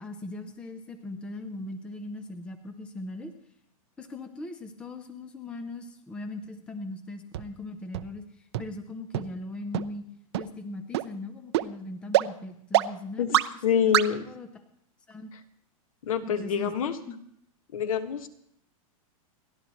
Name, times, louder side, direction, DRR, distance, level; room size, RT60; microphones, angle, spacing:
voice 1, 0.0-3.3 4.0-8.2 8.6-10.1 10.3-13.5 13.7-14.0 14.3-14.5 15.1-15.3 16.2-16.7 17.1-17.2, left 2 dB, 5° left, 7 dB, 0.6 m, -39 dB
sound 1, 7.3-7.4 7.9-8.0 8.5-8.6 9.1-9.2 9.7-9.8 10.3-10.4 10.9-11.0 11.5-11.6 12.1-12.2 12.7-12.8 13.3-13.4 13.9-14.0, right 15 dB, 50° right, 0.6 m, -22 dB
voice 2, 13.6-14.2 16.0-17.0 17.7-18.3, left 8 dB, 70° left, 8 dB, 1.6 m, -26 dB
29.0 x 11.5 x 3.1 m, 0.70 s
supercardioid pair, 175°, 18 cm